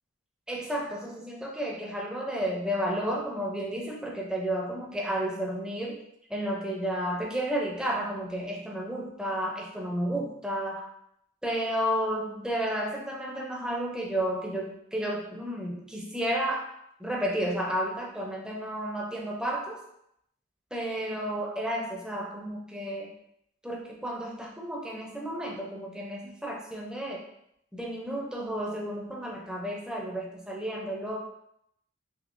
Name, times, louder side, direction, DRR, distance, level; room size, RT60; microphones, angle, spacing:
voice 1, 0.5-6.0 6.3-10.9 11.4-16.6 17.0-19.8 20.7-23.1 23.6-27.2 27.7-31.2, right 1 dB, 5° right, -1 dB, 0.4 m, -32 dB
3.5 x 2.8 x 2.5 m, 0.75 s
head